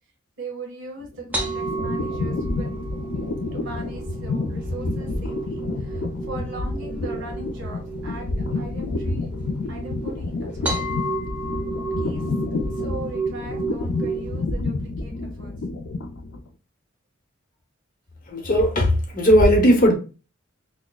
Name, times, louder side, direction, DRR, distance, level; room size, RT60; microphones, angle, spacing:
voice 1, 0.4-2.7 3.5-9.3 9.7-10.8 12.0-12.3 12.7-15.5, right 2 dB, 60° right, 1.6 m, -39 dB
sound 1, 1.0-16.5, left 2 dB, 60° left, 0.5 m, -29 dB
sound 2, 1.3-14.4, right 3 dB, 10° right, 0.9 m, -33 dB
voice 2, 18.3-19.9, equal, 40° left, 0.9 m, -17 dB
6.0 x 2.1 x 2.3 m
head